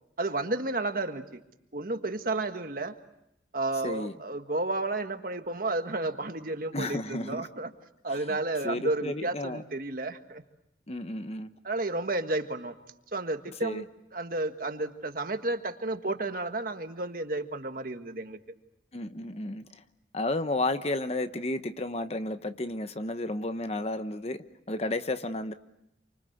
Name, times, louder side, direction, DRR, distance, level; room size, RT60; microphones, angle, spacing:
voice 1, 0.2-1.4 1.7-3.0 3.5-7.7 8.0-10.4 11.6-12.7 13.1-18.4, right 2 dB, 50° right, 7 dB, 1.6 m, -32 dB
voice 2, 6.7-7.5 8.1-8.4 8.6-9.6 10.9-11.5 13.6-13.8 18.9-19.7 20.1-25.5, left 2 dB, 35° left, 10 dB, 1.0 m, -32 dB
28.5 x 25.0 x 7.9 m, 0.84 s
head